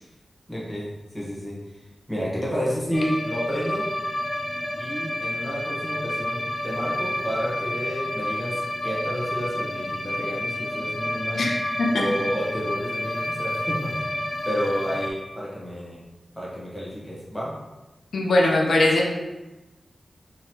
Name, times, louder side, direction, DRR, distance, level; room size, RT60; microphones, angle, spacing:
voice 1, 0.5-1.8 2.1-3.9 4.8-11.5 11.9-14.0 14.4-16.0 16.3-17.5, equal, 5° left, -6 dB, 1.1 m, -30 dB
sound 1, 2.9-15.1, left 1 dB, 25° left, 0.4 m, -29 dB
voice 2, 18.1-19.1, left 2 dB, 85° left, -1 dB, 0.6 m, -20 dB
3.8 x 3.0 x 2.8 m, 1.1 s
wide cardioid pair, 125°, 0 cm